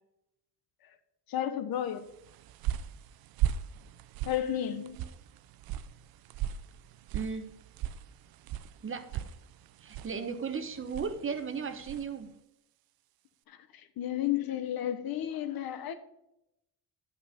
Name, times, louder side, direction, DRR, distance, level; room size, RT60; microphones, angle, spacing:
voice 1, 1.3-2.0 4.2-5.0 13.5-15.9, left 11 dB, 70° left, 1.2 m, -32 dB
sound 1, 2.1-12.2, right 11 dB, 70° right, 0.6 m, -38 dB
voice 2, 7.1-7.5 8.8-9.2 9.8-12.3, right 5 dB, 35° right, 1.1 m, -36 dB
10.0 x 5.8 x 5.1 m
cardioid pair, 135°, 37 cm